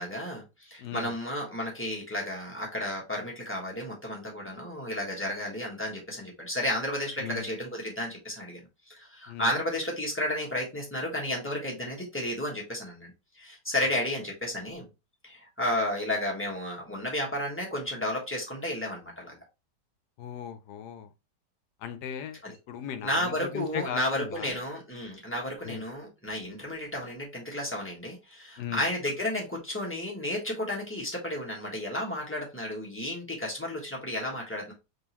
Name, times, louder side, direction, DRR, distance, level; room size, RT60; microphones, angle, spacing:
voice 1, 0.0-8.6 8.9-14.9 15.2-19.4 22.4-22.5 23.0-34.7, left 1 dB, 10° left, 1.2 m, -32 dB
voice 2, 0.8-1.1 7.2-7.5 9.3-9.5 20.2-21.1 21.8-24.6 25.6-25.8 28.6-28.9, left 8 dB, 75° left, 1.2 m, -37 dB
3.7 x 3.6 x 2.9 m
omnidirectional pair, 1.9 m